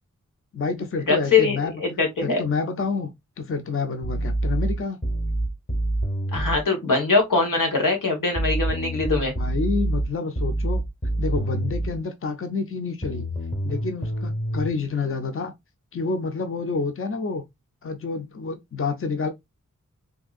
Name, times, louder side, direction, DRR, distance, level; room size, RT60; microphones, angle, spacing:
voice 1, 0.5-1.8 2.2-5.0 9.4-10.8 11.2-13.3 13.6-15.5 15.9-17.4 17.8-19.3, left 4 dB, 45° left, 0.7 m, -28 dB
voice 2, 1.1-2.4 6.3-9.3, left 4 dB, 90° left, 1.2 m, -22 dB
sound 1, 4.0-6.6 8.4-12.0 13.0-14.7, right 1 dB, 25° left, 1.2 m, -26 dB
3.5 x 2.7 x 2.4 m
cardioid pair, 45°, 31 cm